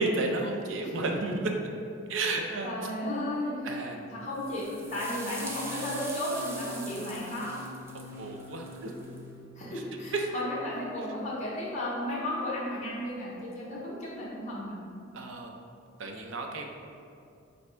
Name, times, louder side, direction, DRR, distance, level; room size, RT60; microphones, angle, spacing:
voice 1, 0.0-1.5 2.1-2.9 3.6-4.0 7.9-8.9 9.7-9.8 10.1-10.3 15.1-15.5 16.0-16.7, right 2 dB, 75° right, 2 dB, 0.5 m, -32 dB
voice 2, 2.6-3.6 4.1-7.6 9.6-14.8, left 1 dB, 35° left, -7 dB, 0.8 m, -34 dB
sound 1, 4.3-9.2, right 2 dB, 10° right, 0.3 m, -43 dB
sound 2, 4.6-10.3, left 1 dB, 65° left, 0.5 m, -47 dB
3.9 x 3.3 x 3.3 m, 2.4 s
head